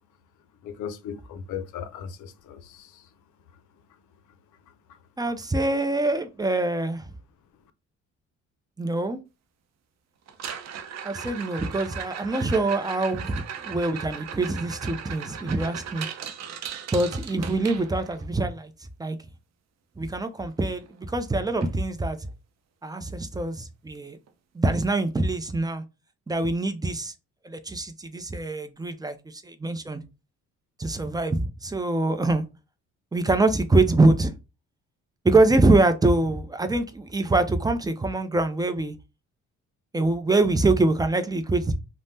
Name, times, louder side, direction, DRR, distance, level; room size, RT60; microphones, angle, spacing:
voice 1, 0.6-2.9, left 8 dB, 80° left, 0.5 m, -37 dB
voice 2, 5.2-7.1 8.8-9.2 11.0-16.1 16.9-18.7 19.0-19.2 20.0-22.2 22.8-24.2 24.5-25.8 26.3-27.1 27.4-30.0 30.8-32.4 33.1-34.3 35.2-39.0 39.9-41.7, right 2 dB, 15° right, 0.4 m, -24 dB
sound 1, 10.3-18.3 20.5-20.6 20.9-21.2 21.6-21.7 22.3-22.4 24.3-24.4, right 8 dB, 60° right, 0.6 m, -37 dB
3.3 x 2.0 x 2.7 m
cardioid pair, 90°, 30 cm